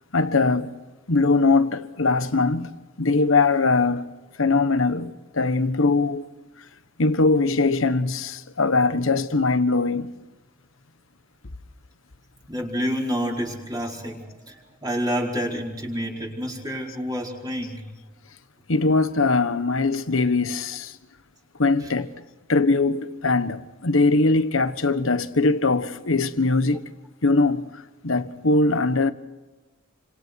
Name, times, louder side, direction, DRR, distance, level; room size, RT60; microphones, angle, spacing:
voice 1, 0.1-0.7 1.1-2.7 3.0-4.1 4.4-6.2 7.0-10.1 18.7-21.0 21.6-22.1 22.5-26.9 27.2-29.1, left 3 dB, 75° left, 1.3 m, -21 dB
voice 2, 12.5-17.8 21.8-21.9, equal, 20° right, 4.8 m, -29 dB
30.0 x 26.5 x 4.7 m
head